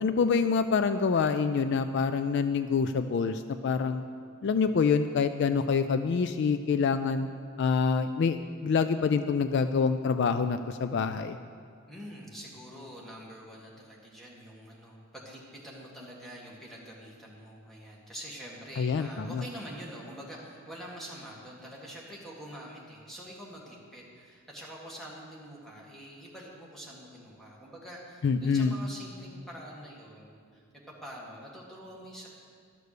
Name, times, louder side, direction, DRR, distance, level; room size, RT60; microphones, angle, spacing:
voice 1, 0.0-4.0 4.4-7.3 7.6-8.4 8.6-11.4 18.8-19.4 28.2-28.7, left 5 dB, 55° left, 10 dB, 0.3 m, -26 dB
voice 2, 11.9-32.3, equal, ahead, -4 dB, 1.7 m, -45 dB
12.0 x 6.6 x 6.6 m, 2.2 s
head